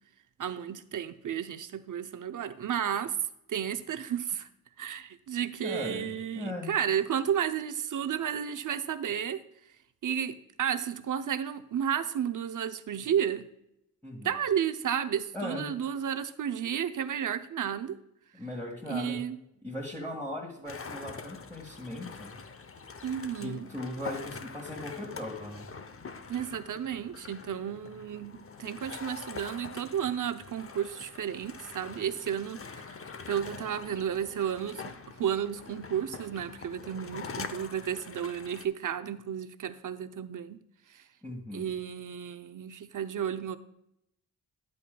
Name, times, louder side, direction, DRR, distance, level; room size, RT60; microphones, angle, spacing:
voice 1, 0.4-3.2 3.5-4.5 4.8-9.4 10.0-13.5 14.2-18.0 18.9-19.4 23.0-23.7 26.3-32.8 33.3-40.6 40.9-41.0 41.5-43.6, right 9 dB, 55° right, 10 dB, 0.7 m, -32 dB
voice 2, 5.6-6.7 14.0-14.3 15.3-15.7 18.3-19.2 19.6-22.3 23.4-25.7 41.2-41.7, left 1 dB, 5° left, -4 dB, 1.9 m, -38 dB
sound 1, 20.7-38.6, left 5 dB, 35° left, 0.7 m, -44 dB
10.5 x 8.4 x 2.3 m, 0.79 s
cardioid pair, 65°, 38 cm